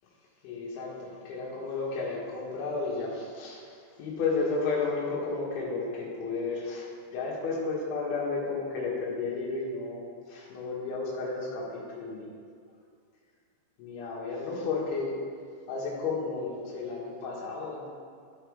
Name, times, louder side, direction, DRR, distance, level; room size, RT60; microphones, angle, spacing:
voice 1, 0.4-10.0 10.3-12.3 13.8-15.1 15.7-17.9, left 4 dB, 75° left, -5 dB, 4.0 m, -33 dB
14.5 x 5.6 x 3.4 m, 2.2 s
omnidirectional pair, 5.7 m